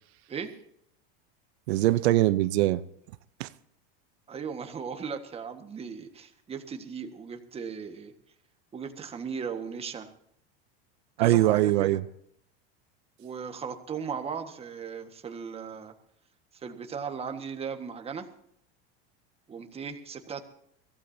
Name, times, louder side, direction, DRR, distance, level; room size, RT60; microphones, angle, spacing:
voice 1, 1.7-2.8 3.4-3.5 11.2-12.0, right 15 dB, 85° right, 14 dB, 0.8 m, -22 dB
voice 2, 4.3-8.1 8.7-10.1 11.2-12.0 13.2-15.9 16.5-18.3 19.5-20.4, right 6 dB, 20° right, 6 dB, 1.6 m, -37 dB
22.5 x 16.5 x 2.8 m, 0.71 s
supercardioid pair, 150°, 32 cm